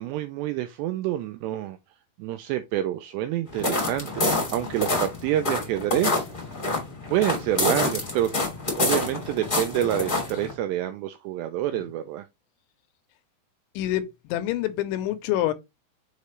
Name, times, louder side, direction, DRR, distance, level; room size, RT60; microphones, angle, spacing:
voice 1, 0.0-1.8 2.2-6.3 7.1-8.4 8.7-12.3, right 12 dB, 85° right, 2.4 m, -27 dB
sound 1, 3.5-10.5, left 2 dB, 25° left, 1.1 m, -27 dB
voice 2, 13.8-15.5, left 13 dB, 85° left, 3.0 m, -26 dB
6.7 x 5.1 x 3.1 m
omnidirectional pair, 5.4 m